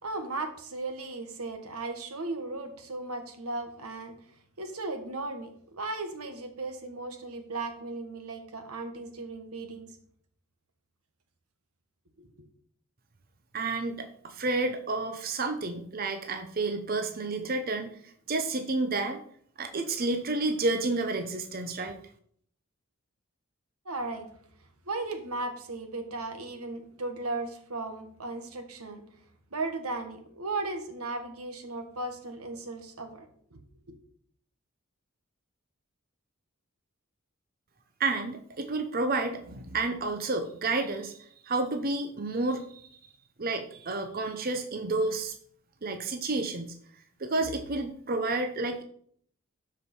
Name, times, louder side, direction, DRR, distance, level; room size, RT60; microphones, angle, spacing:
voice 1, 0.0-4.1 4.6-9.9 12.2-12.3 23.8-24.3 24.9-29.0 29.5-33.3 33.5-33.6 33.9-34.0, right 2 dB, 90° right, 6 dB, 1.5 m, -36 dB
voice 2, 13.5-19.2 19.6-22.0 38.0-42.9 43.4-45.3 45.8-46.7 47.2-48.8, right 3 dB, 40° right, 7 dB, 0.7 m, -30 dB
12.5 x 5.1 x 4.4 m, 0.63 s
head